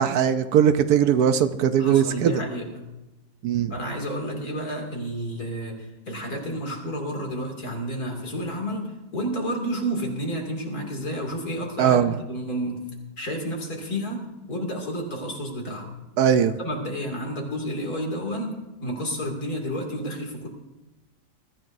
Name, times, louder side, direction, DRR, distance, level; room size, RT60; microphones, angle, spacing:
voice 1, 0.0-2.3 3.4-3.7 11.8-12.1 16.2-16.5, right 8 dB, 70° right, 10 dB, 1.2 m, -20 dB
voice 2, 1.8-2.8 3.7-12.9 13.2-15.9 16.6-20.5, equal, 60° left, 2 dB, 3.0 m, -31 dB
22.5 x 14.0 x 2.6 m, 1.0 s
omnidirectional pair, 1.8 m